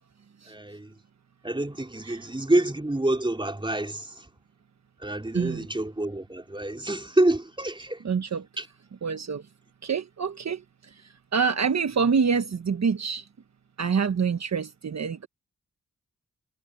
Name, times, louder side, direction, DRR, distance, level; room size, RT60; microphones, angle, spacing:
voice 1, 0.5-0.9 1.4-4.2 5.0-8.0 8.6-8.7, right 1 dB, 15° right, 3.8 m, -27 dB
voice 2, 5.3-5.7 8.0-8.4 9.0-9.4 9.8-10.6 11.3-13.3 13.8-15.3, right 6 dB, 55° right, 1.2 m, -26 dB
cardioid pair, 60°, 32 cm